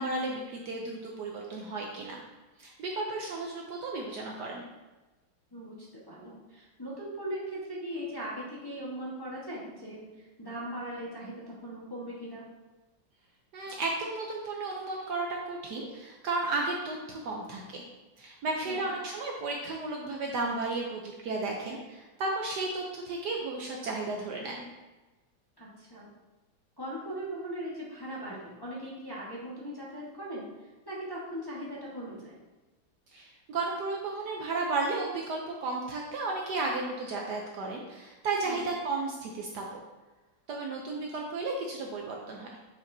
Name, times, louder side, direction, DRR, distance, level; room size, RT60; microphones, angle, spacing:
voice 1, 0.0-2.2 2.6-4.6 13.5-17.8 18.2-24.7 33.1-39.8 40.5-42.5, right 3 dB, 65° right, 0 dB, 1.1 m, -33 dB
voice 2, 5.5-12.4 18.6-18.9 25.6-26.1 26.8-30.4 30.8-32.3 38.4-38.7, equal, 15° left, -7 dB, 1.0 m, -39 dB
7.2 x 5.0 x 2.7 m, 1.1 s
omnidirectional pair, 2.2 m